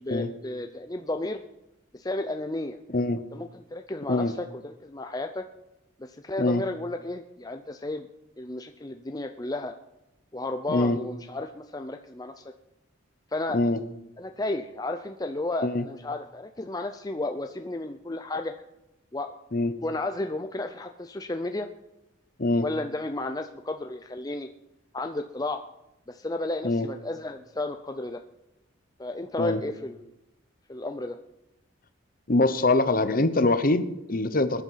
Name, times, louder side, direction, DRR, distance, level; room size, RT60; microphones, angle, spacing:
voice 1, 0.0-1.4 1.9-2.8 3.3-5.5 6.0-8.1 8.4-9.8 10.3-12.5 13.3-13.6 14.2-18.5 19.1-19.4 19.8-21.7 22.6-24.5 24.9-25.6 26.1-28.2 29.0-30.1 30.7-31.2, left 2 dB, 20° left, 6 dB, 0.5 m, -33 dB
voice 2, 32.3-34.6, left 2 dB, 45° left, 12 dB, 0.9 m, -23 dB
20.5 x 10.5 x 5.7 m, 0.92 s
head